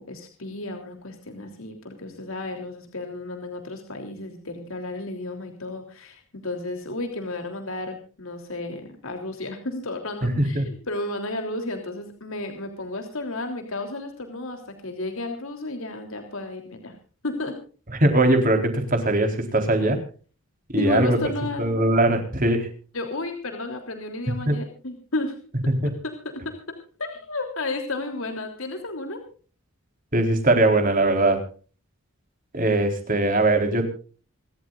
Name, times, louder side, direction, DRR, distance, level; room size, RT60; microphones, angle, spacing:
voice 1, 0.0-16.9 17.2-17.6 20.8-21.6 22.9-25.3 26.0-26.1 27.0-29.2, left 2 dB, 70° left, 5 dB, 3.3 m, -32 dB
voice 2, 10.2-10.7 18.0-20.0 20.7-21.2 21.6-22.7 24.5-24.6 25.7-25.9 30.1-31.4 32.5-33.9, right 2 dB, 40° right, 5 dB, 4.1 m, -20 dB
28.0 x 13.5 x 2.5 m, 0.39 s
head